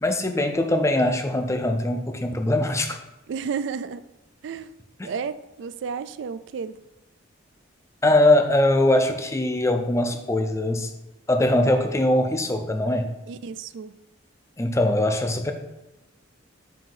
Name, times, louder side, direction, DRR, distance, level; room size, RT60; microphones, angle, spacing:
voice 1, 0.0-3.0 5.0-5.1 8.0-10.9 11.3-13.1 14.6-15.5, left 1 dB, 15° left, 6 dB, 0.4 m, -21 dB
voice 2, 3.3-4.0 4.4-4.7 5.0-6.8 13.3-13.9, right 6 dB, 60° right, 13 dB, 0.3 m, -32 dB
7.5 x 2.7 x 5.6 m, 0.99 s
head